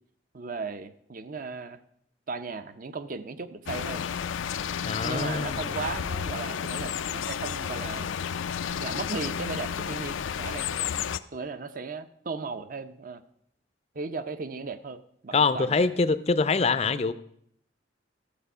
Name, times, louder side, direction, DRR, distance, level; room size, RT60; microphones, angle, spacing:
voice 1, 0.3-1.8 2.3-4.1 5.0-8.1 8.7-10.7 11.3-13.2 13.9-15.9, right 4 dB, 45° right, 0.6 m, -36 dB
sound 1, 3.7-11.2, left 8 dB, 90° left, 0.4 m, -32 dB
voice 2, 4.8-5.8 15.3-17.1, left 4 dB, 35° left, 0.5 m, -24 dB
13.0 x 7.2 x 5.5 m
head